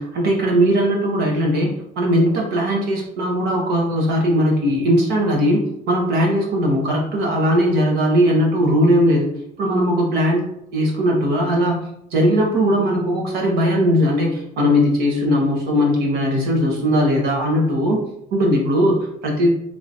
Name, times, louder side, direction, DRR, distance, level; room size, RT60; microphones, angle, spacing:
voice 1, 0.0-10.4 10.7-11.8 12.1-18.0 18.3-19.5, equal, 75° right, -1 dB, 1.2 m, -19 dB
3.8 x 3.1 x 2.7 m, 0.77 s
cardioid pair, 110°, 17 cm